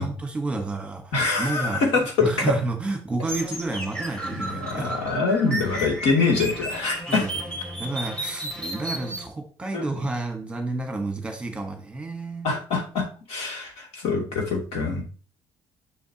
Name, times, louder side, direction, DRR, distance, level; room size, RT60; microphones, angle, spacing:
voice 1, 0.0-1.8 2.2-5.0 7.1-7.3 7.6-12.5, right 2 dB, 10° right, 4 dB, 1.4 m, -30 dB
voice 2, 1.1-2.5 4.3-7.3 9.7-9.8 12.4-15.0, left 4 dB, 75° left, 0 dB, 2.8 m, -24 dB
sound 1, 3.2-9.3, right 1 dB, 10° left, 1.7 m, -33 dB
7.0 x 6.3 x 2.9 m, 0.39 s
cardioid pair, 135°, 10 cm